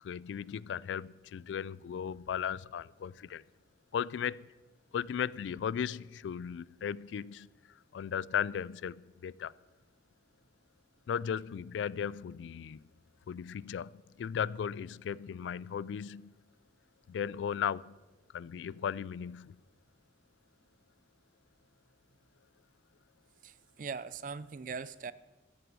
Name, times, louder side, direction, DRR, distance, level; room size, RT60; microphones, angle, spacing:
voice 1, 0.0-3.4 3.9-4.5 4.9-7.5 7.9-9.5 11.1-12.8 13.3-16.3 17.1-17.9 18.3-19.6, left 8 dB, 90° left, 0.3 m, -36 dB
voice 2, 23.4-25.1, right 5 dB, 45° right, 0.4 m, -41 dB
13.0 x 8.0 x 6.2 m
head